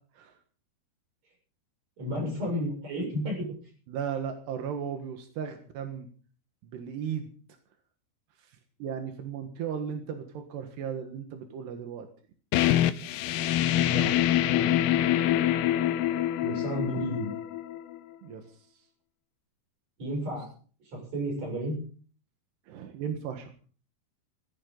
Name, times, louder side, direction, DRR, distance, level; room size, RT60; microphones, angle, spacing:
voice 1, 2.0-3.5 13.7-14.2 14.5-14.8 16.4-17.3 20.0-20.5 20.9-21.8, equal, 40° right, 0 dB, 8.8 m, -32 dB
voice 2, 3.9-6.1 6.6-7.3 8.8-12.1 15.1-15.6 18.2-18.5 22.7-23.5, right 8 dB, 85° right, 5 dB, 3.8 m, -36 dB
sound 1, 12.5-18.0, left 12 dB, 80° left, 2.8 m, -25 dB
19.0 x 15.5 x 4.0 m, 0.42 s
omnidirectional pair, 4.7 m